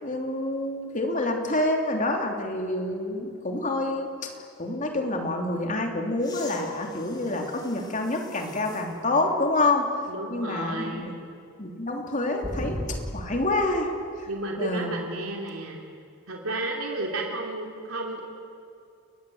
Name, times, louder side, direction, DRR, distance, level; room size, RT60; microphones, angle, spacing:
voice 1, 0.0-4.3 4.6-9.9 10.3-11.2 11.6-13.9 14.2-14.3 14.6-14.9, left 2 dB, 35° left, 2 dB, 3.1 m, -27 dB
sound 1, 6.2-9.0 9.6-9.7 12.4-13.6 15.5-15.6, left 1 dB, 20° left, 2.1 m, -38 dB
voice 2, 10.1-11.2 14.3-15.8 16.3-18.2, right 2 dB, 85° right, 0 dB, 3.1 m, -32 dB
30.0 x 20.5 x 7.9 m, 2.5 s
head